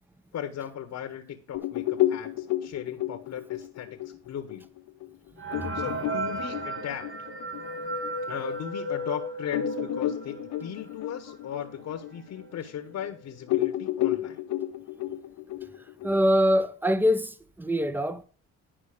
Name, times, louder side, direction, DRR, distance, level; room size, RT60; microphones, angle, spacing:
voice 1, 0.3-4.0 4.3-4.7 5.7-7.0 8.3-14.4, left 9 dB, 65° left, 1.2 m, -37 dB
sound 1, 1.5-8.6 9.0-9.1 9.5-13.1 13.5-16.6, left 14 dB, 80° left, 0.8 m, -32 dB
sound 2, 5.4-10.8 11.3-11.4 11.6-11.7 12.4-12.5 12.9-13.2, right 1 dB, 45° right, 2.0 m, -34 dB
voice 2, 15.8-18.2, equal, 5° right, 0.9 m, -24 dB
10.0 x 5.4 x 5.0 m
cardioid pair, 90°, 30 cm